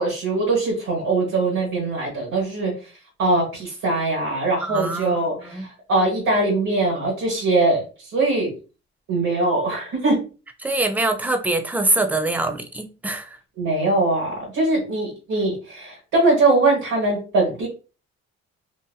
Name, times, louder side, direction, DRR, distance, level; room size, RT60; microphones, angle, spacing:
voice 1, 0.0-2.8 3.2-7.8 8.1-8.5 9.1-10.3 13.6-17.7, right 2 dB, 80° right, 1.2 m, -21 dB
voice 2, 4.6-5.7 10.6-13.4, right 2 dB, 5° right, 0.3 m, -24 dB
2.7 x 2.5 x 2.2 m
cardioid pair, 90°, 30 cm